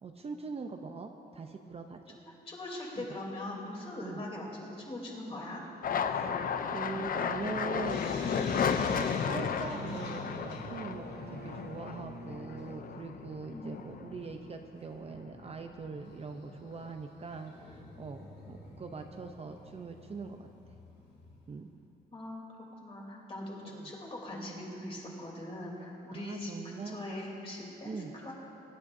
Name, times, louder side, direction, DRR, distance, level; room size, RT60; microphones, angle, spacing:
voice 1, 0.0-2.2 3.0-3.1 4.0-4.2 6.1-6.3 6.6-8.1 8.5-20.5 21.5-21.7 23.6-23.9 26.1-27.0 27.8-28.1, right 4 dB, 35° right, 5 dB, 0.6 m, -42 dB
voice 2, 2.4-5.6 13.5-13.8 22.1-22.4 22.8-27.9 28.2-28.3, left 1 dB, 35° left, -3 dB, 3.2 m, -41 dB
sound 1, 5.8-14.6 14.9-15.7 16.0-16.9, left 6 dB, 55° left, 0.6 m, -34 dB
sound 2, 7.8-10.9 11.2-11.3 11.6-11.7 12.6-12.7 13.7-13.8 14.3-14.4 14.8-14.9 16.0-21.6, left 3 dB, 80° left, 2.9 m, -50 dB
sound 3, 9.5-15.0, right 4 dB, 70° right, 1.0 m, -48 dB
23.0 x 11.0 x 2.7 m, 2.8 s
cardioid pair, 115°, 18 cm